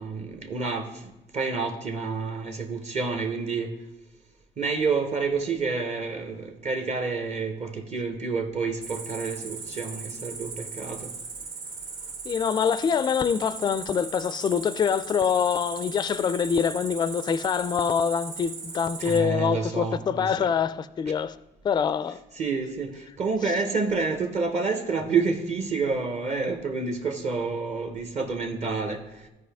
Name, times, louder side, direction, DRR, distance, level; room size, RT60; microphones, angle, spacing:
voice 1, 0.0-3.8 4.6-11.1 19.0-20.5 22.4-29.3, right 4 dB, 40° right, 1.0 m, -29 dB
Cricket, 8.8-19.2, right 4 dB, 60° right, 2.1 m, -38 dB
voice 2, 12.2-21.4 21.6-22.2, left 7 dB, 25° left, 0.3 m, -25 dB
14.0 x 4.8 x 3.5 m
cardioid pair, 110°, 17 cm